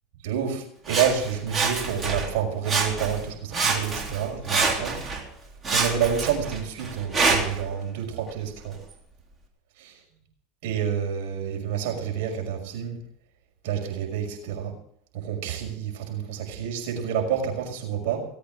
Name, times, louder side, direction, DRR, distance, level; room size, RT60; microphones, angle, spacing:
voice 1, 0.2-5.0 5.6-8.8 10.6-13.0 13.6-14.7 15.1-18.3, right 8 dB, 70° right, 2 dB, 5.9 m, -28 dB
Sawing, 0.9-2.3 2.6-3.3 3.5-5.2 5.6-7.6 8.3-8.4, right 4 dB, 25° right, 3.5 m, -26 dB
18.5 x 8.6 x 7.8 m, 0.66 s
hypercardioid pair, 100°, 0 cm